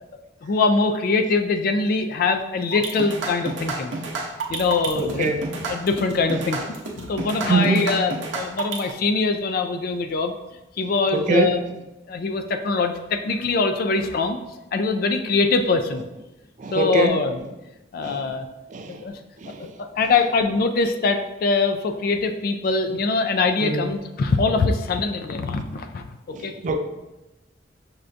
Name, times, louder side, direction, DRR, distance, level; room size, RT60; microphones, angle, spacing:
voice 1, 0.4-4.0 4.5-10.3 10.8-11.6 12.1-14.4 14.7-16.1 16.7-17.4 17.9-18.5 18.9-19.2 19.6-26.1 26.4-26.5, left 4 dB, 50° left, 7 dB, 0.3 m, -23 dB
sound 1, 2.7-8.9, right 3 dB, 85° right, 0.6 m, -30 dB
voice 2, 5.0-5.4 6.3-6.4 7.5-7.9 11.1-11.6 16.6-17.2 18.0-18.3 18.7-19.0 19.4-19.7 23.6-23.9 26.3-26.8, right 2 dB, 40° right, 7 dB, 0.3 m, -23 dB
6.2 x 2.2 x 2.5 m, 1.0 s
head